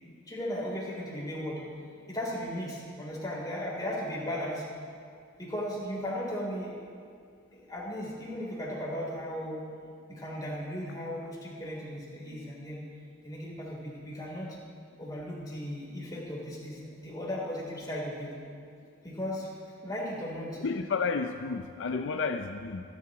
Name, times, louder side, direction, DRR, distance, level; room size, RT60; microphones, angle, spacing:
voice 1, 0.3-1.6 2.1-4.6 5.4-6.8 7.5-9.7 10.1-12.9 13.2-14.5 15.0-18.3 19.0-19.5 19.8-20.6, equal, 20° left, -5 dB, 3.3 m, -36 dB
voice 2, 20.6-22.8, left 4 dB, 65° left, 6 dB, 0.5 m, -31 dB
25.0 x 10.5 x 3.0 m, 2.2 s
head